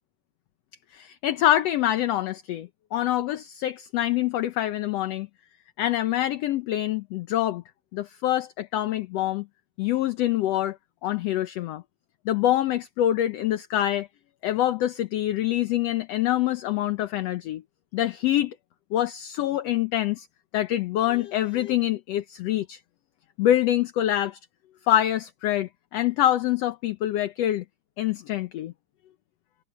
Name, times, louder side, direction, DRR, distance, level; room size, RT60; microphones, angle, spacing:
voice 1, 0.9-5.3 5.8-7.6 7.9-9.5 9.8-10.8 11.0-11.8 12.3-14.1 14.4-17.6 17.9-18.6 18.9-20.3 20.5-22.8 23.4-24.4 24.9-27.6 28.0-28.7, left 12 dB, 70° left, 1.8 m, -25 dB
omnidirectional pair, 3.4 m